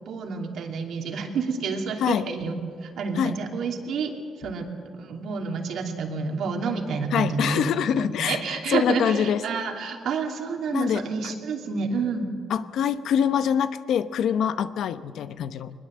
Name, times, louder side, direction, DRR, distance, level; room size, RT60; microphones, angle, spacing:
voice 1, 0.1-4.7 4.9-7.7 8.2-12.3, right 5 dB, 65° right, 3 dB, 2.8 m, -29 dB
voice 2, 7.1-9.4 10.7-11.3 12.5-15.7, left 8 dB, 70° left, 12 dB, 0.9 m, -25 dB
22.0 x 20.5 x 7.7 m, 2.2 s
cardioid pair, 115°, 0 cm